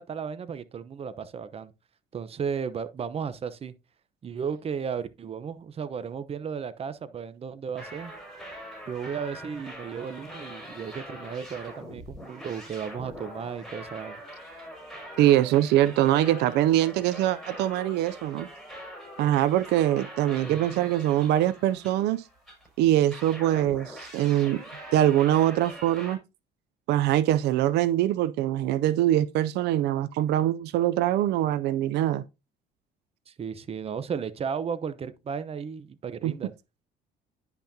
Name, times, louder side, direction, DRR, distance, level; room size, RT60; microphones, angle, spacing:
voice 1, 0.0-1.7 2.1-3.7 4.2-8.1 8.9-14.2 20.4-20.9 33.3-36.5, right 6 dB, 35° right, 0.8 m, -34 dB
sound 1, 7.8-22.7 23.1-26.2, equal, ahead, 5.2 m, -43 dB
voice 2, 15.2-18.5 19.2-22.3 22.8-24.6 24.9-26.2 26.9-32.2 36.2-36.3, right 13 dB, 80° right, 0.4 m, -23 dB
10.0 x 5.9 x 2.7 m
cardioid pair, 110°, 17 cm